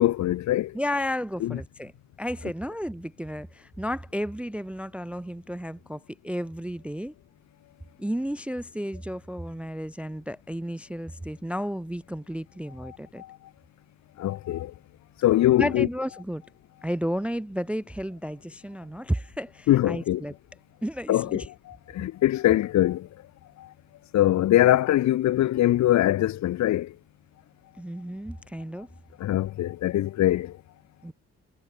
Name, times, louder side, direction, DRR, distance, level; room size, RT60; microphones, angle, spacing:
voice 1, 0.0-0.8 1.4-1.6 12.8-13.4 14.2-14.7 15.2-15.9 19.7-20.2 21.1-23.1 23.6-23.7 24.1-27.0 29.2-30.6, left 14 dB, 65° left, 0.7 m, -23 dB
voice 2, 0.7-1.9 2.2-7.1 8.0-13.2 15.6-16.4 16.8-20.3 20.8-21.5 27.8-28.9 31.0-31.1, equal, 5° right, 0.3 m, -32 dB
cardioid pair, 90°, 30 cm